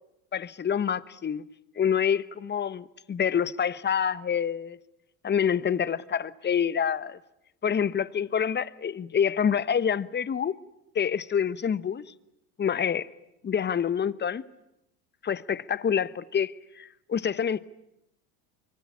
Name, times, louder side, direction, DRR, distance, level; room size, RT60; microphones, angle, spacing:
voice 1, 0.3-1.5 1.8-4.8 5.2-7.2 7.6-10.6 10.9-12.0 12.6-13.1 13.4-14.4 15.2-17.6, left 8 dB, 25° left, 1.1 m, -27 dB
25.0 x 23.5 x 9.7 m
hypercardioid pair, 85°, 45 cm